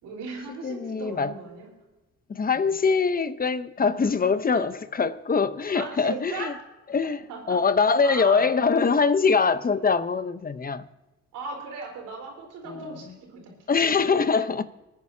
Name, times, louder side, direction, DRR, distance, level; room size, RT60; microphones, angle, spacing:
voice 1, 0.0-1.7 3.8-4.3 4.6-4.7 5.7-6.5 7.3-7.6 8.0-8.5 11.3-13.9 14.2-14.4, right 4 dB, 90° right, 4.3 m, -38 dB
voice 2, 0.6-1.3 2.3-6.5 6.9-7.2 7.5-10.9 12.6-13.0 13.7-14.6, left 5 dB, 30° left, 0.8 m, -23 dB
26.5 x 9.5 x 2.8 m
cardioid pair, 90°, 30 cm